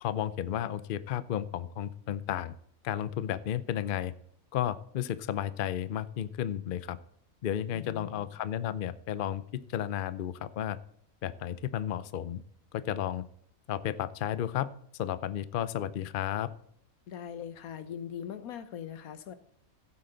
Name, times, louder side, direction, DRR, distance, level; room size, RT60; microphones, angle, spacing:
voice 1, 0.0-2.5 2.8-4.1 4.5-7.0 7.4-10.8 11.2-12.4 12.7-13.2 13.7-14.7 15.0-16.5, left 10 dB, 60° left, 15 dB, 0.5 m, -33 dB
voice 2, 7.7-8.3 17.1-19.4, left 9 dB, 85° left, 12 dB, 1.3 m, -41 dB
15.5 x 8.5 x 3.9 m, 0.68 s
omnidirectional pair, 1.5 m